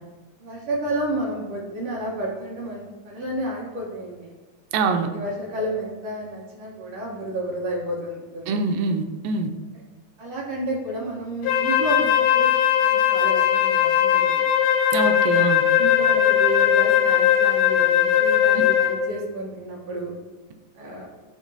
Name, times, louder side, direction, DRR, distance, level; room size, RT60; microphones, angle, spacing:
voice 1, 0.4-4.3 4.8-8.6 10.2-12.6 12.8-14.5 15.8-20.1 20.8-21.1, right 1 dB, 65° right, -3 dB, 1.9 m, -31 dB
voice 2, 4.7-5.1 8.5-9.5 14.9-15.6, right 4 dB, 90° right, 5 dB, 2.3 m, -24 dB
Wind instrument woodwind instrument, 11.4-19.1, left 10 dB, 85° left, 1.5 m, -19 dB
11.0 x 3.7 x 2.7 m, 1.2 s
omnidirectional pair, 3.8 m